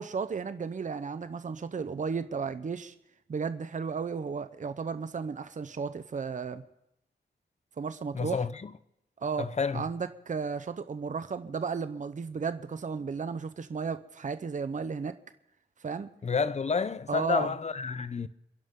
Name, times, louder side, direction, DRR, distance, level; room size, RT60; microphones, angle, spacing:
voice 1, 0.0-2.9 3.3-6.6 7.8-8.5 9.2-15.2 15.8-16.1 17.1-17.5, right 5 dB, 45° right, 0.7 m, -34 dB
voice 2, 8.1-8.7 9.4-9.8 16.2-18.3, left 5 dB, 35° left, 0.6 m, -30 dB
29.5 x 11.0 x 3.7 m
wide cardioid pair, 120°, 19 cm